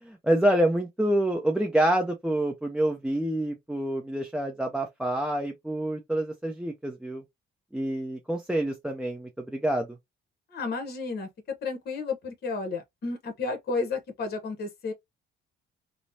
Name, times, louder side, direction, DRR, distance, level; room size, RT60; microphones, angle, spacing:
voice 1, 0.0-7.2 7.7-9.9, right 1 dB, 5° right, 0.5 m, -27 dB
voice 2, 10.5-14.9, left 4 dB, 55° left, 1.0 m, -32 dB
3.0 x 2.1 x 2.6 m
cardioid pair, 90°, 20 cm